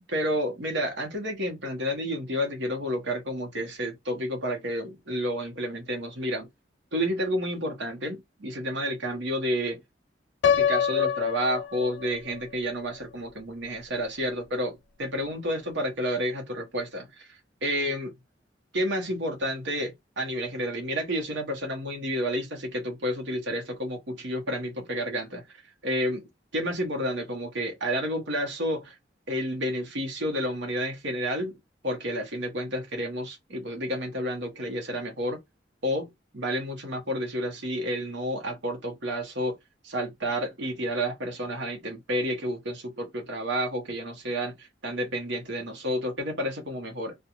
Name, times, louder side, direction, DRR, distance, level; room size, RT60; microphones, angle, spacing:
voice 1, 0.1-6.5 6.9-9.8 10.6-18.1 18.7-25.4 25.8-29.0 29.3-31.6 31.8-35.4 35.8-39.6 39.8-47.1, equal, 75° right, 0.9 m, -30 dB
Piano, 10.4-12.4, left 8 dB, 65° left, 0.3 m, -25 dB
2.5 x 2.2 x 2.9 m
head